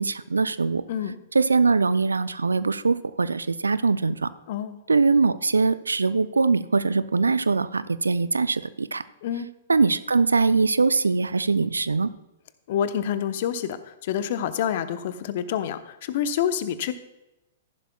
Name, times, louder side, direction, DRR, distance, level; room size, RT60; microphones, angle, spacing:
voice 1, 0.0-0.8 1.3-4.3 4.9-9.0 9.7-12.1, right 4 dB, 80° right, 15 dB, 0.4 m, -22 dB
voice 2, 4.5-4.8 9.2-9.5 12.7-16.9, left 9 dB, 50° left, 11 dB, 0.8 m, -27 dB
14.0 x 11.0 x 2.3 m, 0.93 s
figure-of-eight pair, 110°, 0 cm